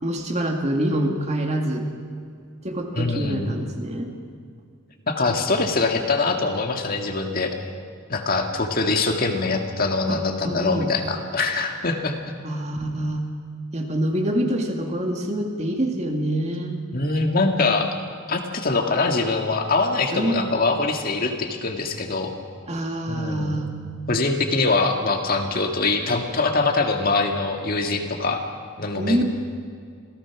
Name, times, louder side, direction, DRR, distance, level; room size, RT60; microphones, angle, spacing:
voice 1, 0.0-1.9 2.6-4.1 10.1-10.9 12.4-13.2 13.7-16.8 20.1-20.5 22.7-23.7 29.0-29.2, right 1 dB, 30° right, 3 dB, 2.2 m, -25 dB
voice 2, 2.9-3.5 5.1-7.5 8.1-12.2 16.9-17.9 18.3-22.3 23.1-23.7 24.1-28.4 28.8-29.2, left 3 dB, 45° left, 4 dB, 1.9 m, -23 dB
27.0 x 17.0 x 6.1 m, 2.2 s
head